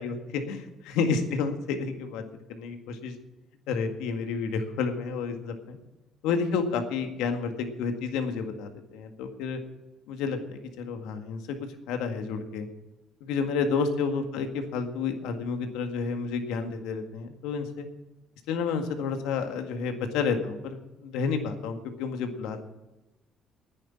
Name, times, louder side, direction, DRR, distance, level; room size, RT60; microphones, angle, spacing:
voice 1, 0.0-2.2 2.5-3.2 3.7-5.8 6.2-9.6 10.1-12.7 13.2-17.9 18.5-20.8 21.0-22.6, left 5 dB, 80° left, 6 dB, 1.8 m, -30 dB
10.0 x 9.9 x 8.5 m, 1.0 s
supercardioid pair, 70°, 0 cm